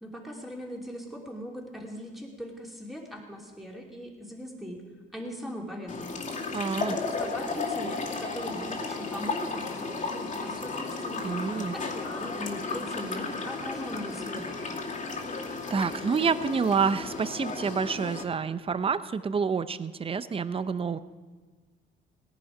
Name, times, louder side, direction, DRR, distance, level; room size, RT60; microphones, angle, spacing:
voice 1, 0.0-4.8 5.1-6.2 6.7-14.6, equal, ahead, -1 dB, 3.0 m, -40 dB
sound 1, 5.9-18.2, left 3 dB, 40° left, 2.4 m, -34 dB
voice 2, 6.5-7.0 11.2-11.7 15.7-21.0, right 5 dB, 30° right, 14 dB, 0.6 m, -28 dB
18.0 x 11.0 x 4.9 m, 1.4 s
cardioid pair, 90°, 20 cm